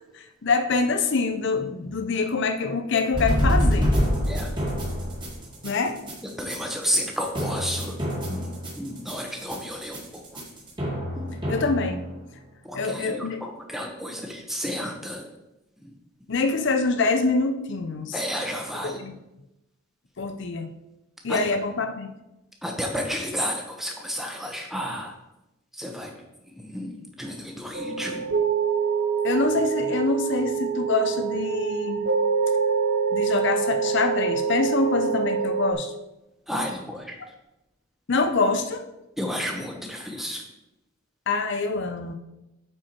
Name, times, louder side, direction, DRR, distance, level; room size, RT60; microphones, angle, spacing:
voice 1, 0.1-3.9 5.6-6.0 11.5-12.0 12.7-13.4 16.3-18.1 18.8-19.1 20.2-20.7 21.2-22.1 29.2-32.1 33.1-35.9 38.1-38.9 41.3-42.1, left 3 dB, 55° left, 7 dB, 0.5 m, -25 dB
sound 1, 3.1-12.3, equal, 20° right, 1.9 m, -26 dB
voice 2, 6.2-8.0 8.3-10.4 11.1-11.3 12.6-15.3 15.8-15.9 18.1-19.0 21.3-21.4 22.6-25.2 25.7-26.1 26.4-28.3 36.5-37.3 39.2-40.4, equal, ahead, 2 dB, 0.9 m, -32 dB
sound 2, 27.7-35.7, right 6 dB, 55° right, 0.6 m, -25 dB
8.8 x 4.6 x 4.5 m, 0.93 s
head